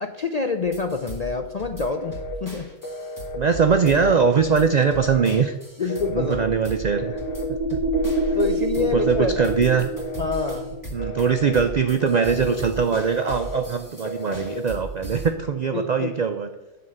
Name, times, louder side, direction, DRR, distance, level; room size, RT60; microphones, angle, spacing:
voice 1, 0.0-2.7 5.8-6.4 8.3-9.6 10.2-10.8 15.7-16.1, left 4 dB, 55° left, 5 dB, 0.4 m, -26 dB
sound 1, 0.6-15.3, right 1 dB, 15° left, 1.5 m, -38 dB
Telephone, 1.8-2.4 2.8-3.4 3.9-4.4 4.9-5.4 5.9-6.5 6.9-7.5 7.9-8.5 8.9-9.5 10.0-10.5 11.0-11.6 12.0-12.6 13.0-13.6 14.0-14.6, left 2 dB, 80° left, 1.4 m, -34 dB
voice 2, 3.3-5.6 6.1-7.2 7.5-7.8 8.8-9.9 10.9-16.5, right 6 dB, 70° right, 7 dB, 0.4 m, -21 dB
sound 2, 5.9-10.9, right 2 dB, 10° right, 1.2 m, -27 dB
11.0 x 3.8 x 7.7 m, 1.0 s
omnidirectional pair, 1.4 m